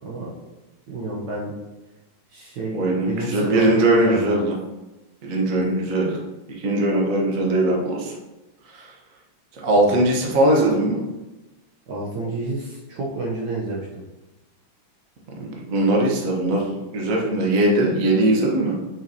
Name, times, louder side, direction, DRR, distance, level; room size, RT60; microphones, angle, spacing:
voice 1, 0.0-0.4 0.9-1.5 2.3-4.3 9.8-10.0 11.9-14.0, right 2 dB, 65° right, -4 dB, 1.4 m, -30 dB
voice 2, 2.7-4.5 5.2-6.2 6.5-8.1 8.6-8.9 9.5-11.0 15.4-16.6 16.9-18.8, right 1 dB, 45° right, -1 dB, 1.3 m, -20 dB
5.9 x 5.7 x 2.8 m, 1.1 s
omnidirectional pair, 2.2 m